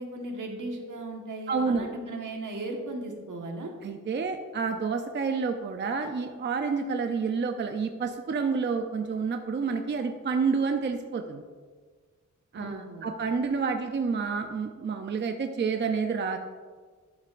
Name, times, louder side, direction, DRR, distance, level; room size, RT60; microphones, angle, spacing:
voice 1, 0.0-3.7 12.5-13.1, right 2 dB, 70° right, 1 dB, 1.4 m, -37 dB
voice 2, 1.5-1.9 3.8-11.4 12.5-16.4, right 5 dB, 35° right, 5 dB, 0.5 m, -29 dB
11.0 x 8.0 x 2.5 m, 1.5 s
wide cardioid pair, 145°, 32 cm